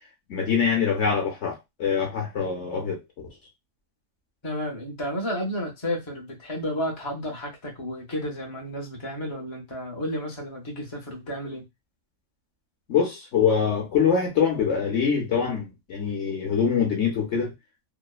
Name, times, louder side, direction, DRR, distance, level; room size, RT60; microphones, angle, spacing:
voice 1, 0.3-3.0 12.9-17.5, left 6 dB, 60° left, 0.9 m, -24 dB
voice 2, 4.4-11.6, equal, 30° left, 0.5 m, -32 dB
2.8 x 2.1 x 2.3 m
omnidirectional pair, 1.6 m